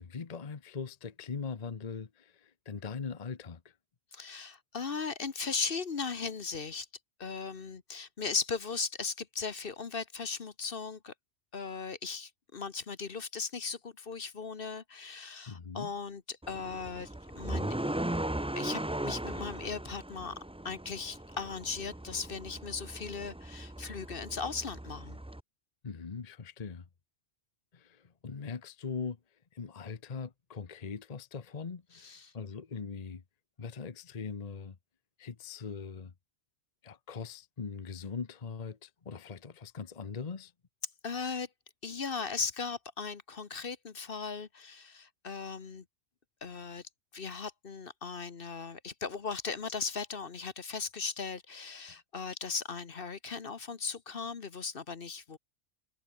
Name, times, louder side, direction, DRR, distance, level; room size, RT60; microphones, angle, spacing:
voice 1, 0.0-3.7 15.5-15.9 25.8-26.8 27.7-29.2 29.5-33.2 33.6-34.8 35.2-36.1 36.8-40.5, left 5 dB, 35° left, 1.0 m, -41 dB
voice 2, 4.1-6.9 7.2-11.1 11.5-17.7 18.6-20.4 20.6-25.2 31.9-32.3 41.0-41.5 41.8-45.8 46.4-46.8 47.1-55.4, left 5 dB, 50° left, 1.3 m, -38 dB
sound 1, 16.4-25.4, right 1 dB, 5° right, 0.5 m, -38 dB
omnidirectional pair, 1.2 m